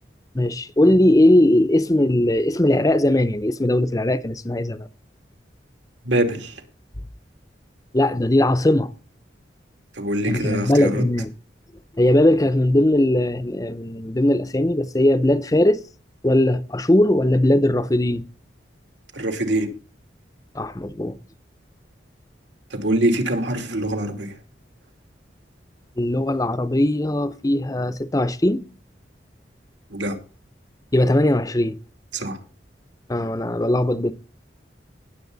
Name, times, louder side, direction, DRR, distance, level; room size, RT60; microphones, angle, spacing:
voice 1, 0.3-4.9 7.9-8.9 10.3-11.3 11.9-15.8 16.2-18.3 20.5-21.2 26.0-28.6 30.9-31.8 33.1-34.1, left 1 dB, 20° left, 0.6 m, -19 dB
voice 2, 6.0-6.6 9.9-11.0 19.1-19.7 22.7-24.3 29.9-30.1 32.1-32.4, right 1 dB, 80° right, 2.7 m, -24 dB
19.0 x 7.9 x 4.0 m
head